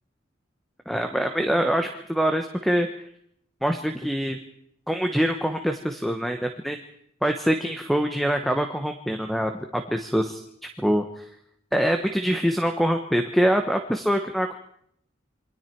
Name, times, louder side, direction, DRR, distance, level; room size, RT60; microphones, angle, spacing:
voice 1, 0.9-2.9 3.6-4.4 4.9-6.8 7.2-10.4 10.8-11.2 11.7-14.6, equal, ahead, 6 dB, 1.1 m, -24 dB
27.5 x 23.0 x 4.6 m, 0.71 s
head